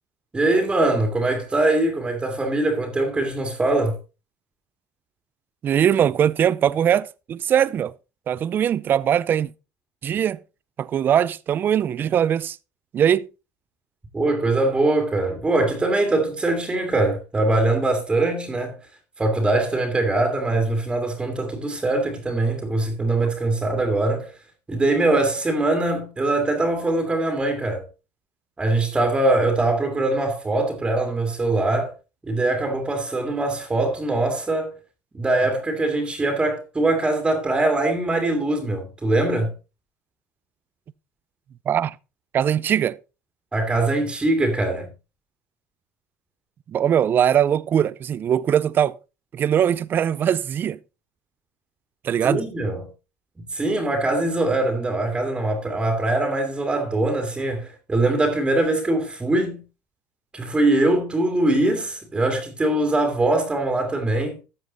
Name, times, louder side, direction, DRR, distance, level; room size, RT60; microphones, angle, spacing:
voice 1, 0.3-4.0 14.1-18.8 19.2-24.3 24.7-27.8 28.6-31.9 32.2-34.7 35.1-39.5 43.5-44.9 52.2-52.9 53.4-59.6 60.3-64.4, right 2 dB, 15° right, 2.1 m, -22 dB
voice 2, 5.6-7.9 8.3-9.5 10.0-10.4 10.8-12.6 12.9-13.3 41.7-42.0 42.3-43.0 46.7-48.9 49.3-50.8 52.0-52.5, right 9 dB, 35° right, 0.5 m, -21 dB
13.5 x 7.6 x 4.0 m
cardioid pair, 135°, 6 cm